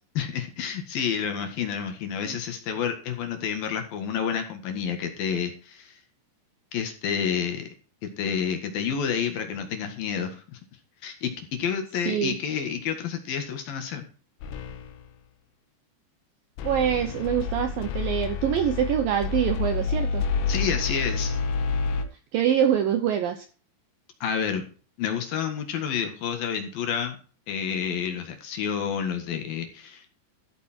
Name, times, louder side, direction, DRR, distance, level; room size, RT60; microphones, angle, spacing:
voice 1, 0.1-6.0 6.7-7.7 8.2-10.6 11.0-11.3 11.6-14.1 20.5-21.4 24.2-24.6 25.0-27.2 27.5-30.1, left 7 dB, 60° left, 6 dB, 3.1 m, -29 dB
sound 1, 14.4-15.1 16.6-22.1, left 5 dB, 80° left, 3.6 m, -29 dB
voice 2, 16.6-20.2 22.3-23.5, right 9 dB, 75° right, 8 dB, 2.2 m, -25 dB
13.5 x 8.3 x 4.4 m, 0.38 s
omnidirectional pair, 5.2 m